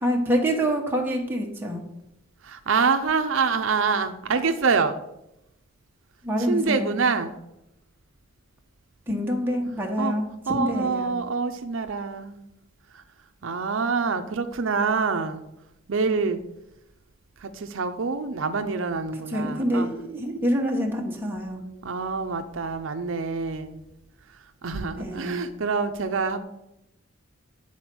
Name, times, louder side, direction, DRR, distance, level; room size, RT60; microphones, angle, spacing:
voice 1, 0.0-1.8 6.2-7.0 9.1-10.3 10.5-11.1 19.3-21.6 25.0-25.4, equal, 10° right, 0 dB, 1.2 m, -26 dB
voice 2, 2.4-5.0 6.5-7.4 10.0-10.1 10.5-12.4 12.9-13.0 13.4-15.4 15.9-16.4 17.4-20.0 21.8-23.8 24.6-26.4, right 4 dB, 70° right, 7 dB, 0.6 m, -26 dB
9.7 x 4.3 x 6.0 m, 0.86 s
head